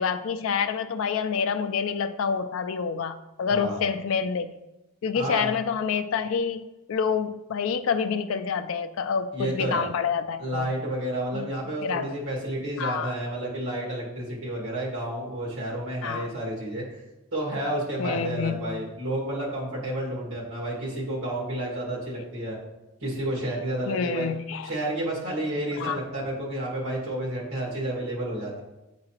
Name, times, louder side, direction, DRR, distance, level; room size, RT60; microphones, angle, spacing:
voice 1, 0.0-4.5 5.0-10.7 11.3-11.5 11.8-12.2 12.8-13.1 16.0-16.3 18.0-18.6 23.9-24.7 25.7-26.0, left 6 dB, 60° left, 9 dB, 0.3 m, -27 dB
voice 2, 3.5-3.8 5.1-5.5 9.3-9.9 10.4-16.8 17.3-22.6 23.0-24.3 24.6-28.6, right 1 dB, 70° right, -4 dB, 1.9 m, -30 dB
8.7 x 3.8 x 2.9 m, 0.98 s
head